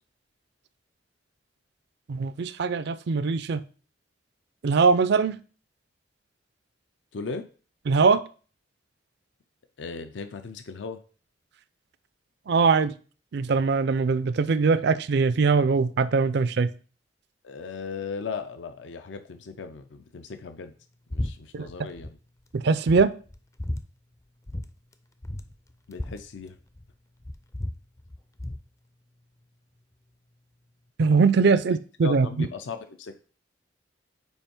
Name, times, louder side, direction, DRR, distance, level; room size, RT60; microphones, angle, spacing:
voice 1, 2.1-3.6 4.6-5.4 7.9-8.2 12.5-12.9 13.3-16.7 21.5-21.7 22.5-23.1 31.0-32.5, right 4 dB, 65° right, 14 dB, 0.4 m, -22 dB
voice 2, 7.1-7.4 9.8-11.0 17.4-20.7 21.1-22.2 25.9-26.6 32.0-33.2, left 4 dB, 80° left, 9 dB, 0.5 m, -37 dB
sound 1, 21.1-21.3 21.6-22.1 22.5-22.6 22.9-23.8 24.5-24.7 24.9-25.0 25.2-26.9 27.2-28.6, left 1 dB, 15° left, 0.4 m, -34 dB
5.5 x 4.5 x 4.4 m, 0.40 s
head